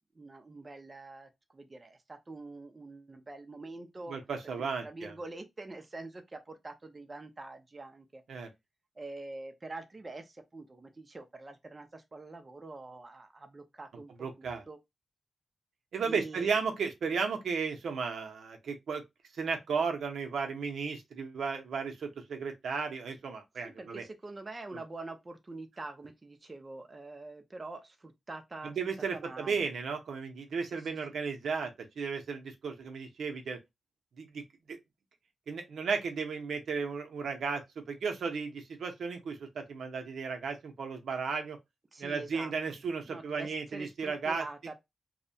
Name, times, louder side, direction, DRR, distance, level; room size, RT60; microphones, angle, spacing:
voice 1, 0.1-4.2 4.6-8.2 9.0-14.1 14.4-14.8 16.0-16.6 23.6-28.8 29.1-29.7 30.6-31.0 41.9-44.7, right 2 dB, 25° right, 0.4 m, -45 dB
voice 2, 4.1-5.1 8.3-8.5 14.2-14.6 15.9-19.0 19.4-24.0 28.6-33.6 34.2-34.4 34.7-34.8 35.5-41.6 42.0-44.4, right 5 dB, 85° right, 0.6 m, -34 dB
2.7 x 2.1 x 2.6 m
wide cardioid pair, 145°, 0 cm